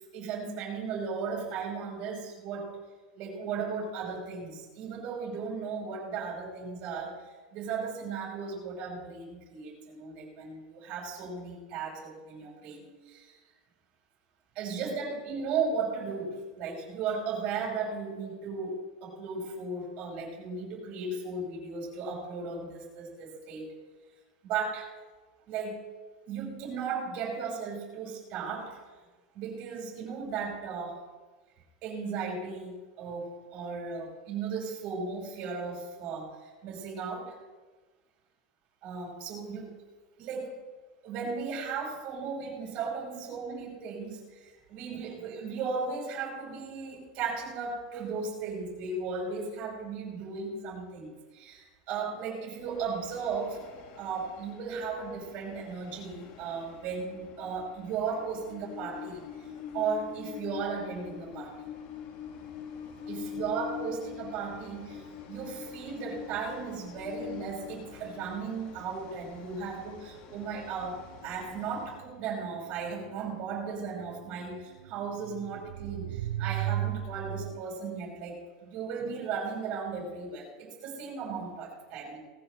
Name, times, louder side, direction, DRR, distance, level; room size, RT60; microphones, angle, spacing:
voice 1, 0.1-2.8 3.2-7.2 7.5-13.3 14.6-23.7 24.4-24.9 25.5-25.8 26.3-28.8 29.3-31.0 31.8-37.3 38.8-39.7 40.2-40.5 41.0-53.6 54.0-59.3 59.7-61.6 63.1-82.2, right 5 dB, 40° right, -3 dB, 5.4 m, -36 dB
Train, 52.6-72.1, left 7 dB, 40° left, 1.5 m, -45 dB
sound 1, 70.4-77.6, right 13 dB, 70° right, 0.6 m, -36 dB
19.5 x 14.5 x 3.4 m, 1.3 s
supercardioid pair, 165°, 4 cm